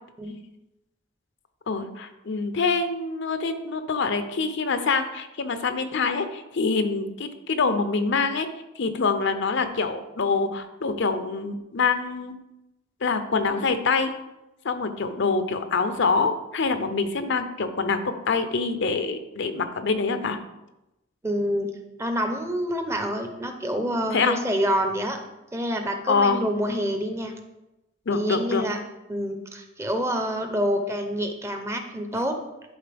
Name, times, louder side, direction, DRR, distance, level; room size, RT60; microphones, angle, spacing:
voice 1, 1.7-8.5 8.8-12.3 13.0-14.1 14.6-20.4 24.1-24.4 26.1-26.4 28.1-28.7, left 4 dB, 65° left, 9 dB, 0.6 m, -25 dB
voice 2, 21.2-21.7 22.0-25.2 25.5-27.3 28.1-28.8 29.1-32.3, equal, 15° right, 5 dB, 0.7 m, -27 dB
11.0 x 4.0 x 3.5 m, 0.94 s
head